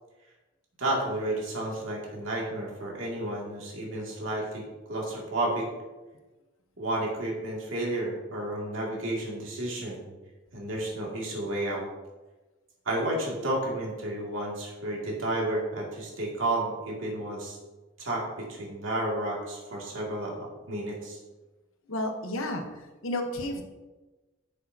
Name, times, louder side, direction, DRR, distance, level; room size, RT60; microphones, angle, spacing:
voice 1, 0.8-4.6 4.9-5.7 6.8-10.1 10.5-11.8 12.9-17.6 18.0-21.2, right 1 dB, 70° right, -3 dB, 2.2 m, -31 dB
voice 2, 21.9-22.6 23.0-23.6, left 1 dB, 80° left, 4 dB, 1.0 m, -31 dB
9.8 x 6.5 x 2.7 m, 1.2 s
head